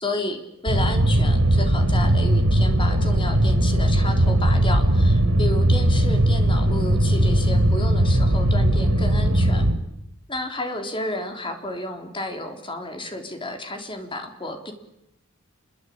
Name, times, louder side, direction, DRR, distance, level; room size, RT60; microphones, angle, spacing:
voice 1, 0.0-9.7 10.3-14.7, left 1 dB, 25° left, 5 dB, 3.7 m, -31 dB
sound 1, 0.7-9.7, right 1 dB, 90° right, 4.8 m, -19 dB
28.0 x 22.5 x 8.7 m, 0.88 s
head